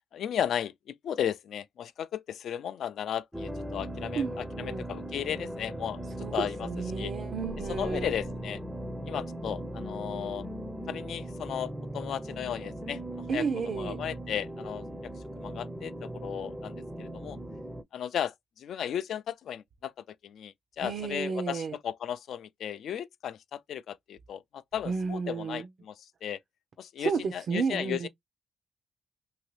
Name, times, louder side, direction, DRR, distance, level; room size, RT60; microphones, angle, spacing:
voice 1, 0.1-6.7 7.0-7.1 7.7-8.6 9.1-10.5 10.9-13.4 13.8-14.9 15.4-17.4 17.9-26.0 26.2-26.4 26.8-28.1, left 9 dB, 65° left, 0.3 m, -35 dB
sound 1, 3.3-17.8, right 1 dB, 5° right, 0.5 m, -39 dB
voice 2, 4.2-4.8 6.2-8.1 13.3-14.0 20.8-21.7 24.9-25.7 27.0-28.1, right 5 dB, 55° right, 0.5 m, -32 dB
2.9 x 2.6 x 3.1 m
cardioid pair, 90°, 0 cm